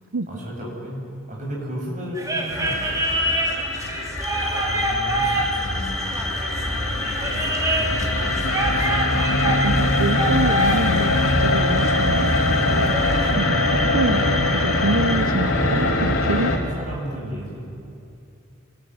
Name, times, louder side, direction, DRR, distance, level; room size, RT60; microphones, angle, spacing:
voice 1, 0.3-1.0 1.3-2.8 4.3-6.1 7.2-9.4 12.4-13.1 15.4-16.0 16.3-17.6, equal, 35° right, -3 dB, 7.9 m, -34 dB
sound 1, 2.1-13.3, right 1 dB, 15° right, 3.2 m, -27 dB
sound 2, 2.5-16.6, left 2 dB, 85° left, 3.3 m, -22 dB
sound 3, 4.2-15.2, right 1 dB, ahead, 1.2 m, -33 dB
voice 2, 9.1-12.3 12.7-12.9 13.3-16.5, right 3 dB, 75° right, 10 dB, 0.8 m, -27 dB
26.0 x 20.5 x 9.7 m, 2.7 s
head